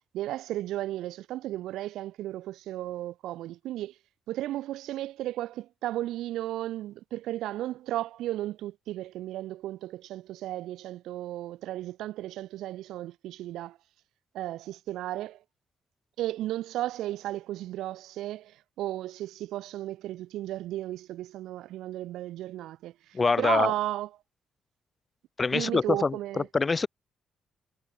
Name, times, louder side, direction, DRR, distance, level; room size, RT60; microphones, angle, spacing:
voice 1, 0.0-4.0 4.3-13.8 14.3-15.4 16.2-24.1 25.5-26.5, right 14 dB, 85° right, 3.0 m, -34 dB
voice 2, 23.1-23.7 25.4-26.9, left 4 dB, 30° left, 5.0 m, -25 dB
cardioid pair, 90°, 0 cm